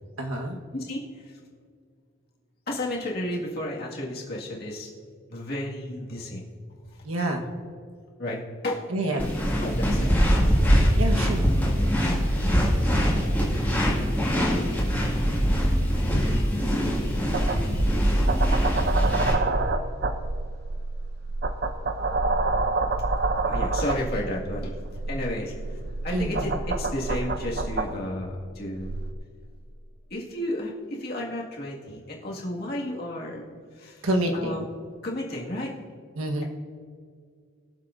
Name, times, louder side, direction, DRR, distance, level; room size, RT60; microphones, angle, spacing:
voice 1, 0.2-0.6 7.0-7.5 8.9-9.3 11.0-11.4 26.1-26.6 34.0-34.7 36.1-36.4, right 1 dB, 90° right, 2 dB, 1.4 m, -27 dB
voice 2, 0.7-1.3 2.7-4.9 5.3-6.4 6.9-7.0 8.2-8.4 8.6-8.9 9.6-10.5 23.3-24.7 25.1-28.9 30.1-33.5 33.8-34.0 34.3-34.6 35.0-35.7, left 1 dB, 45° left, -3 dB, 2.0 m, -32 dB
sound 1, 9.2-19.3, equal, 10° left, 2.1 m, -23 dB
sound 2, 17.0-27.9 28.7-29.1, right 3 dB, 50° right, 0.6 m, -28 dB
22.0 x 7.4 x 2.7 m, 2.1 s
head